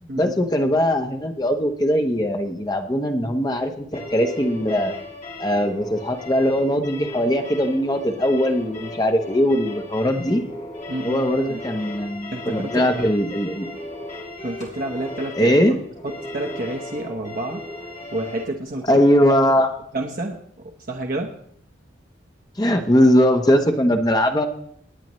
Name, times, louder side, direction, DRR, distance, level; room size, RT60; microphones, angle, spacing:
voice 1, 0.2-4.9 5.4-10.4 11.0-13.7 15.4-15.8 18.9-19.7 22.6-24.5, equal, 20° left, 5 dB, 0.9 m, -20 dB
sound 1, 3.9-18.4, left 1 dB, 35° left, 3.7 m, -36 dB
voice 2, 10.9-11.6 12.3-13.1 14.4-15.5 16.0-17.6 18.1-19.0 19.9-21.3, right 2 dB, 45° right, 2 dB, 1.0 m, -29 dB
19.5 x 9.2 x 3.1 m, 0.65 s
head